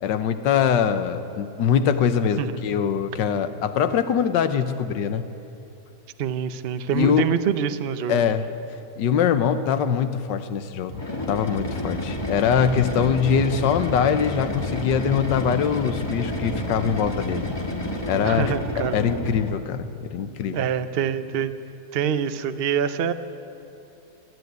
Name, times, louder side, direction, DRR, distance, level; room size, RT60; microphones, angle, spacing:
voice 1, 0.0-5.2 6.9-7.3 8.1-8.4 9.0-17.5 18.1-18.5 18.9-20.6, left 7 dB, 80° left, 10 dB, 1.5 m, -23 dB
voice 2, 6.2-8.3 18.2-19.0 20.5-21.6 21.9-23.1, right 8 dB, 55° right, 10 dB, 0.6 m, -25 dB
sound 1, 10.9-19.7, left 1 dB, 15° left, 1.5 m, -30 dB
27.0 x 11.0 x 9.4 m, 2.7 s
omnidirectional pair, 1.9 m